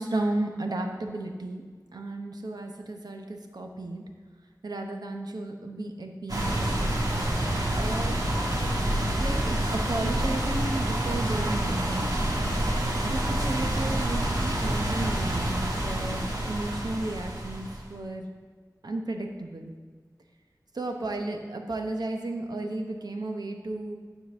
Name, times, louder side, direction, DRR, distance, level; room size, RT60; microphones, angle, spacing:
voice 1, 0.0-1.6 1.9-4.0 4.6-7.0 7.7-8.2 9.2-12.4 13.0-18.3 18.8-19.7 20.7-24.0, right 2 dB, 90° right, 3 dB, 0.8 m, -34 dB
sound 1, 6.3-17.9, right 1 dB, 70° right, 1.5 m, -27 dB
9.6 x 4.0 x 6.7 m, 1.5 s
wide cardioid pair, 55°, 7 cm